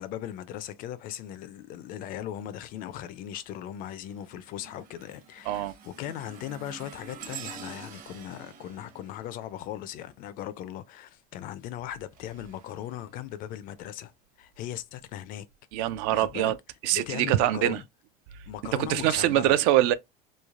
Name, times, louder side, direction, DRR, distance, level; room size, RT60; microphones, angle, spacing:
voice 1, 0.0-14.1 14.4-15.5 16.1-16.5 16.9-17.8 18.5-19.6, left 11 dB, 45° left, 0.4 m, -38 dB
sound 1, 2.6-3.0 3.5-10.3 11.6-13.8 14.4-14.6 15.5-15.6, right 6 dB, 45° right, 0.9 m, -48 dB
voice 2, 15.7-16.6 16.8-17.8 18.7-19.9, right 13 dB, 60° right, 0.4 m, -24 dB
3.1 x 2.1 x 2.4 m
supercardioid pair, 110°, 20 cm